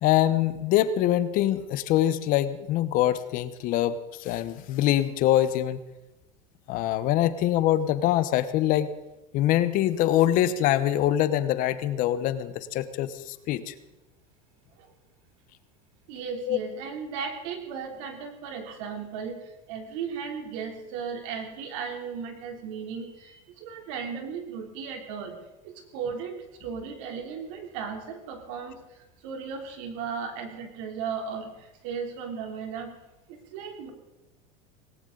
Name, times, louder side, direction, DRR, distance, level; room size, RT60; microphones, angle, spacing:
voice 1, 0.0-5.8 6.7-8.9 9.3-13.7 16.5-16.6, left 12 dB, 55° left, 13 dB, 1.0 m, -24 dB
voice 2, 16.1-19.4 19.7-25.3 25.6-28.8 29.2-32.9 33.3-33.9, right 6 dB, 70° right, 4 dB, 3.3 m, -36 dB
18.5 x 17.5 x 4.0 m, 0.99 s
supercardioid pair, 120°, 17 cm